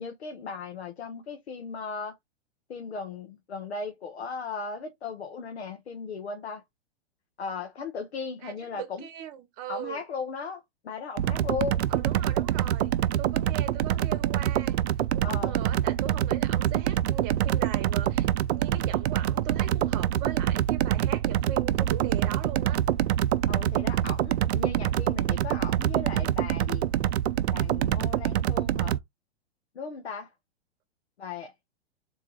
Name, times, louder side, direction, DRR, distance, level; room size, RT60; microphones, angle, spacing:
voice 1, 0.0-2.2 2.7-6.6 7.4-9.1 9.7-11.9 15.2-15.6 23.5-26.8 27.5-29.0 29.7-30.3 31.2-31.5, left 5 dB, 90° left, 1.1 m, -37 dB
voice 2, 8.4-10.0 11.9-14.8 15.1-22.8, right 11 dB, 40° right, 0.9 m, -40 dB
sound 1, 11.2-29.0, right 11 dB, 85° right, 0.5 m, -26 dB
3.8 x 2.3 x 4.6 m
hypercardioid pair, 125°, 32 cm